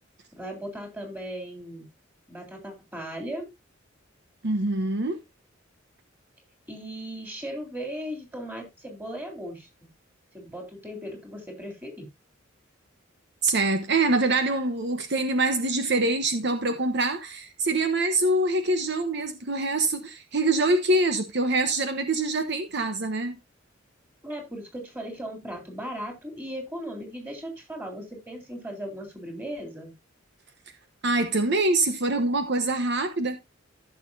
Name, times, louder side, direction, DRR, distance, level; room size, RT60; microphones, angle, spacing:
voice 1, 0.3-1.9 2.3-3.5 6.7-9.7 10.3-12.1 24.2-29.9, equal, 10° right, 3.5 m, -37 dB
voice 2, 4.4-5.2 13.4-23.4 31.0-33.4, right 2 dB, 60° right, 1.1 m, -25 dB
15.0 x 6.6 x 2.7 m
head